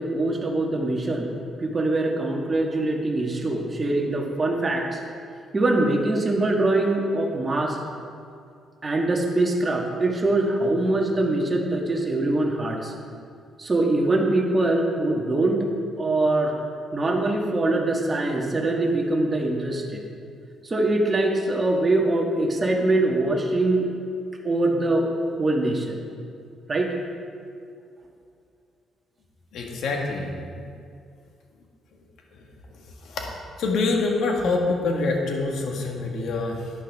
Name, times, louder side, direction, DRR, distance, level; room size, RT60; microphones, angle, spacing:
voice 1, 0.0-1.3 1.6-5.0 5.5-7.8 8.8-12.9 13.6-15.7 16.0-16.5 16.9-20.0 20.6-23.9 24.4-25.1 25.4-26.0 26.7-26.9, right 2 dB, 30° right, 0 dB, 1.6 m, -23 dB
voice 2, 29.5-30.7 32.3-32.4 32.7-33.3 33.6-36.7, left 3 dB, 75° left, 1 dB, 1.7 m, -26 dB
11.5 x 9.9 x 3.6 m, 2.4 s
cardioid pair, 90°, 0 cm